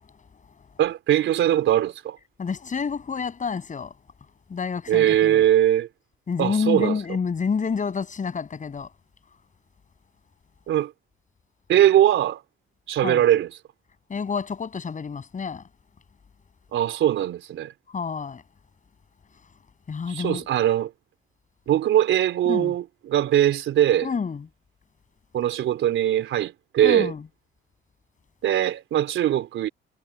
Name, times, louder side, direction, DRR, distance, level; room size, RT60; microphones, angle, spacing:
voice 1, 0.8-2.2 4.9-5.9 6.4-7.0 10.7-10.9 11.7-12.4 12.9-13.5 16.7-17.7 20.1-20.9 21.7-24.1 25.3-27.1 28.4-29.7, right 11 dB, 80° right, 3.8 m, -21 dB
voice 2, 2.4-3.9 4.5-5.4 6.3-8.9 13.0-13.2 14.1-15.6 17.9-18.4 19.9-20.4 22.5-22.7 24.0-24.4 26.8-27.2, left 5 dB, 40° left, 7.3 m, -28 dB
cardioid pair, 90°, 20 cm